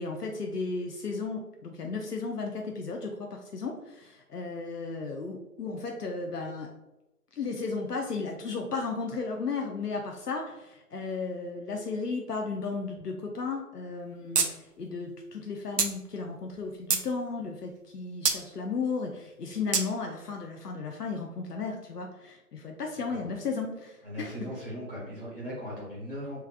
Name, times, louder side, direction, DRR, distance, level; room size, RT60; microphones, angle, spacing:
voice 1, 0.0-6.7 7.3-24.5, left 4 dB, 80° left, 1 dB, 0.7 m, -34 dB
sound 1, 14.4-14.5 14.8-14.9 15.8-15.9 16.5-17.1 18.3-18.4 19.7-19.9, right 5 dB, 90° right, 0.7 m, -25 dB
voice 2, 24.0-26.4, equal, 35° left, -6 dB, 1.3 m, -38 dB
3.5 x 3.3 x 2.2 m, 0.96 s
figure-of-eight pair, 175°, 46 cm